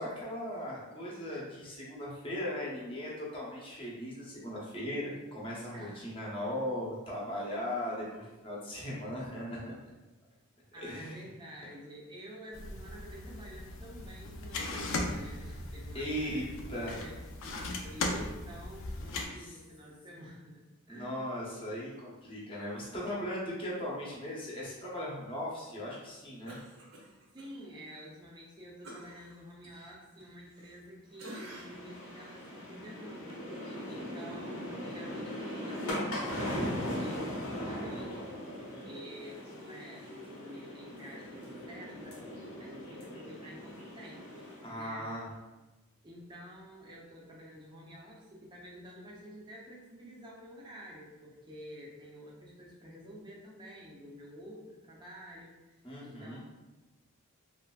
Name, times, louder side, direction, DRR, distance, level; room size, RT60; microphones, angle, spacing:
voice 1, 0.0-9.7 10.8-11.2 15.9-16.9 19.4-19.5 20.9-26.6 44.6-45.3 55.8-56.4, equal, 25° left, -5 dB, 0.6 m, -38 dB
voice 2, 10.7-16.2 16.7-21.3 27.3-38.3 38.6-42.2 42.6-44.3 44.7-45.1 46.0-56.4, equal, 20° right, -3 dB, 0.4 m, -49 dB
sound 1, 12.5-19.3, left 2 dB, 60° left, 0.4 m, -38 dB
Cough, 26.5-27.5 27.9-28.0 28.8-30.9 31.2-31.9 32.4-32.5, right 1 dB, 65° right, 0.7 m, -49 dB
sound 2, 31.2-44.7, equal, 85° left, 0.8 m, -39 dB
3.0 x 2.5 x 2.2 m, 1.1 s
head